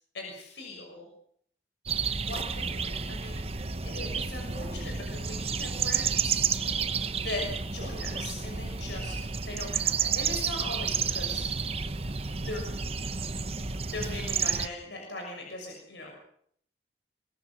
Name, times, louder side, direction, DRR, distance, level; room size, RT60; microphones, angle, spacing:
voice 1, 0.1-1.1 2.3-3.4 3.8-6.4 7.2-9.1 9.4-11.4 12.4-12.6 13.9-16.1, left 2 dB, 90° left, 1 dB, 6.5 m, -39 dB
sound 1, 1.9-14.7, right 6 dB, 35° right, 0.9 m, -31 dB
23.5 x 23.0 x 6.4 m, 0.65 s
head